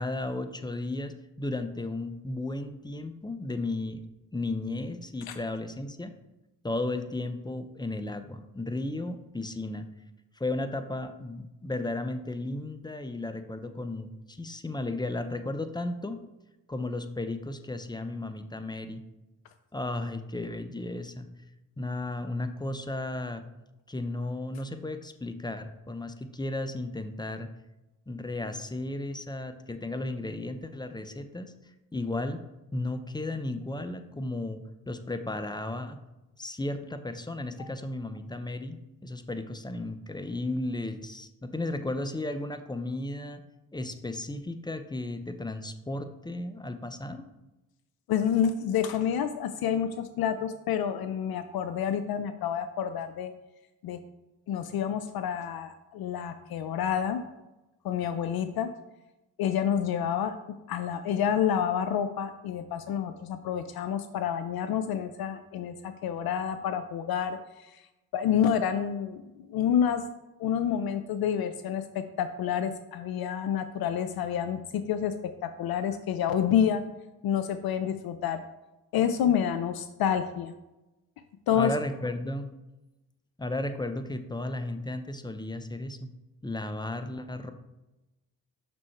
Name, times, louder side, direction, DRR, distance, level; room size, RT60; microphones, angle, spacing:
voice 1, 0.0-4.0 4.3-6.1 6.6-9.9 10.4-16.2 16.7-19.0 19.7-21.3 21.8-23.4 23.9-27.5 28.1-31.5 31.9-32.4 32.7-34.6 34.9-36.0 36.4-43.4 43.7-47.3 81.5-82.5 83.4-86.1 86.4-87.5, left 2 dB, 10° left, 9 dB, 0.6 m, -34 dB
voice 2, 48.1-53.3 53.8-54.0 54.5-57.2 57.8-58.7 59.4-60.4 60.7-67.8 68.1-69.2 69.5-70.0 70.4-75.1 75.4-76.8 77.2-78.4 78.9-80.5 81.5-81.7, left 8 dB, 60° left, 10 dB, 0.5 m, -28 dB
6.1 x 3.7 x 4.4 m, 1.0 s
hypercardioid pair, 40°, 42 cm